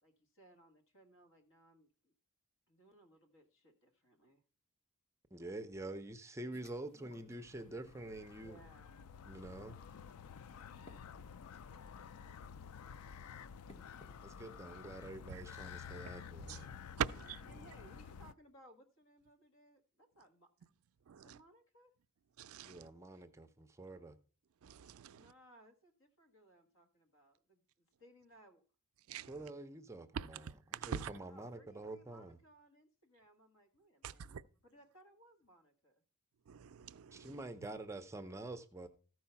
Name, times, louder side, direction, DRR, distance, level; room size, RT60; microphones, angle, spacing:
voice 1, 0.0-2.1 2.7-4.4 8.4-9.0 17.5-20.7 21.1-21.9 25.0-28.6 31.0-34.4 34.6-36.0, right 1 dB, 60° left, 1.7 m, -64 dB
voice 2, 5.3-8.6 9.2-9.8 14.2-16.8 22.6-24.2 29.3-30.4 30.7-32.4 37.1-38.9, right 2 dB, 15° right, 0.5 m, -47 dB
sound 1, 6.5-14.8, left 2 dB, 25° left, 1.2 m, -66 dB
sound 2, 7.4-18.3, left 7 dB, 80° left, 0.4 m, -51 dB
voice 3, 17.0-17.7 21.1-21.4 22.4-22.9 24.6-25.3 29.1-29.4 30.1-31.1 34.0-34.4 36.5-37.4, right 8 dB, 70° right, 0.4 m, -43 dB
14.0 x 4.7 x 5.7 m
head